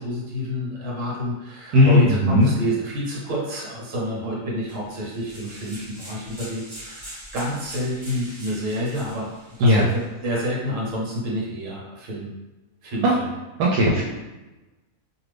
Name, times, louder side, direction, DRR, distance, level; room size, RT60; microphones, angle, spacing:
voice 1, 0.0-9.3 9.6-12.3 12.8-13.3, equal, 60° right, -5 dB, 1.2 m, -29 dB
voice 2, 1.7-2.5 9.6-9.8 13.0-13.1 13.6-14.0, left 1 dB, 80° right, -4 dB, 1.1 m, -16 dB
sound 1, 4.7-10.1, right 1 dB, 20° right, 0.9 m, -42 dB
2.6 x 2.5 x 3.2 m, 1.1 s
omnidirectional pair, 1.6 m